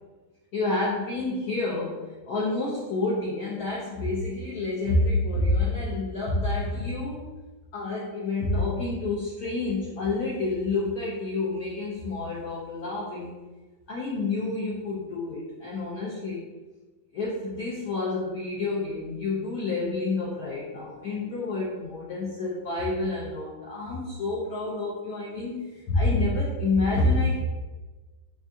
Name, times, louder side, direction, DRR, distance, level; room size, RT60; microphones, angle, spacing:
voice 1, 0.5-7.3 7.7-13.3 13.9-16.4 17.1-27.4, left 2 dB, 70° left, -5 dB, 0.9 m, -28 dB
3.5 x 3.3 x 2.6 m, 1.2 s
omnidirectional pair, 2.1 m